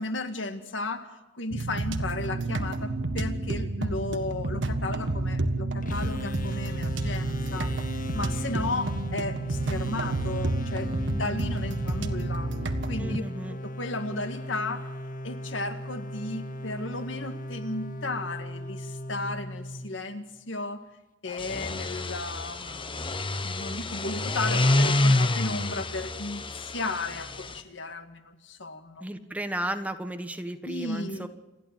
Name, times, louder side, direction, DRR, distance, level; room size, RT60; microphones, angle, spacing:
voice 1, 0.0-7.7 8.1-12.5 12.9-13.2 13.6-14.9 15.2-20.8 21.2-23.0 23.4-29.1 30.6-31.3, left 2 dB, 90° left, 2.0 m, -34 dB
sound 1, 1.5-13.2, right 2 dB, 75° right, 1.6 m, -30 dB
sound 2, 5.8-20.4, left 1 dB, 45° left, 1.3 m, -38 dB
voice 2, 13.0-13.6 29.0-31.3, right 1 dB, 10° right, 1.4 m, -34 dB
sound 3, 21.3-27.6, left 2 dB, 30° left, 1.1 m, -27 dB
28.5 x 11.5 x 9.2 m
head